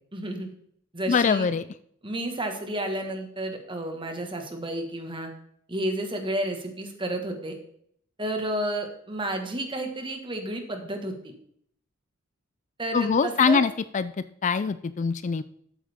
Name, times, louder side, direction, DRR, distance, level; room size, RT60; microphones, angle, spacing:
voice 1, 0.1-0.5 0.9-1.5 2.0-5.3 5.7-7.5 8.2-11.3 12.8-13.6, right 1 dB, 25° right, 4 dB, 1.7 m, -31 dB
voice 2, 1.1-1.6 12.9-14.1 14.4-15.4, left 5 dB, 35° left, 14 dB, 0.3 m, -23 dB
12.5 x 8.5 x 3.6 m, 0.68 s
head